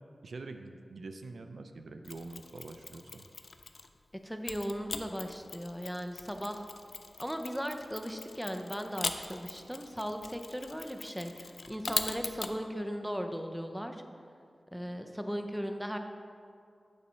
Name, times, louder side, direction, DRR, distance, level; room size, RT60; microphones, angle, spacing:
voice 1, 0.2-3.3, right 3 dB, 85° right, 7 dB, 0.4 m, -45 dB
Mechanisms, 2.0-4.0 4.5-12.6, left 3 dB, 65° left, 0.4 m, -41 dB
voice 2, 4.2-6.7 7.2-14.0 14.7-16.0, equal, ahead, 6 dB, 0.5 m, -37 dB
8.5 x 4.1 x 5.5 m, 2.4 s
wide cardioid pair, 100°, 0 cm